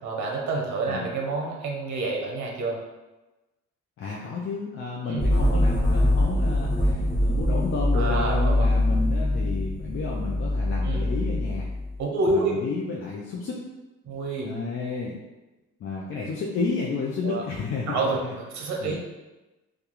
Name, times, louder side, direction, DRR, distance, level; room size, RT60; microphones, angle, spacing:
voice 1, 0.0-2.8 5.0-5.2 7.9-8.8 10.8-11.1 12.0-12.6 14.1-14.5 17.2-17.4 17.9-19.0, right 3 dB, 70° right, -1 dB, 0.6 m, -28 dB
voice 2, 4.0-11.7 12.3-13.6 14.4-15.1 15.8-18.3 18.8-19.0, left 4 dB, 45° left, -3 dB, 0.4 m, -31 dB
sound 1, 5.2-12.0, left 1 dB, 25° left, 1.2 m, -23 dB
2.3 x 2.3 x 2.9 m, 1.1 s
cardioid pair, 90°, 30 cm